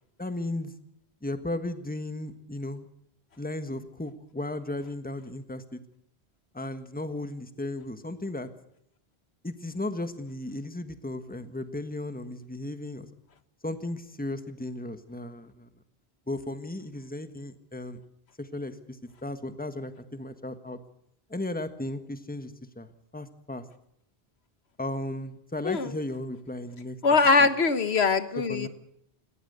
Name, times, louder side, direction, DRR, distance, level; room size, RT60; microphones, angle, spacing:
voice 1, 0.2-0.7 1.2-2.9 3.4-5.8 6.5-8.5 9.4-13.1 13.6-15.7 16.3-18.0 18.4-20.8 21.3-23.6 24.8-27.0 27.4-27.5 28.5-28.7, left 1 dB, 10° left, 10 dB, 1.4 m, -35 dB
voice 2, 27.0-28.7, left 4 dB, 85° left, 12 dB, 1.6 m, -22 dB
19.0 x 17.5 x 8.0 m, 0.76 s
omnidirectional pair, 1.0 m